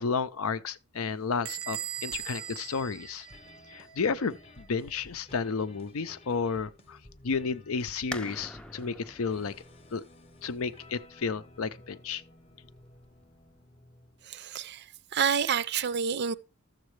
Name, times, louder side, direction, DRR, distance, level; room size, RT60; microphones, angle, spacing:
voice 1, 0.0-3.3 3.7-7.0 7.2-9.5 9.9-10.0 10.4-12.2, left 5 dB, 80° left, 0.6 m, -32 dB
sound 1, 0.9-14.4, left 1 dB, 30° left, 0.9 m, -55 dB
Bell / Squeak, 1.5-4.0, right 11 dB, 85° right, 0.8 m, -39 dB
sound 2, 8.1-13.6, equal, 5° left, 0.4 m, -46 dB
voice 2, 14.2-16.4, right 7 dB, 50° right, 0.5 m, -29 dB
13.0 x 7.3 x 3.2 m
head